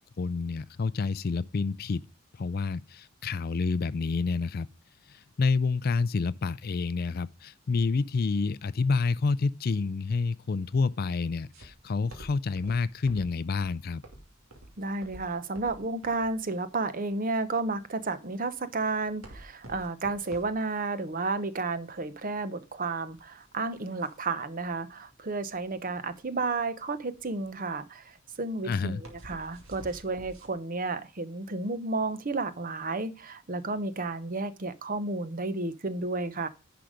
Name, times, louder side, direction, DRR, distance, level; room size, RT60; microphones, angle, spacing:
voice 1, 0.2-2.0 2.3-4.7 5.1-14.0 28.6-29.0, left 4 dB, 45° left, 0.4 m, -28 dB
sound 1, 11.5-30.5, right 1 dB, 90° right, 2.6 m, -50 dB
voice 2, 14.8-36.5, right 3 dB, 40° right, 0.8 m, -32 dB
10.5 x 5.1 x 5.0 m
head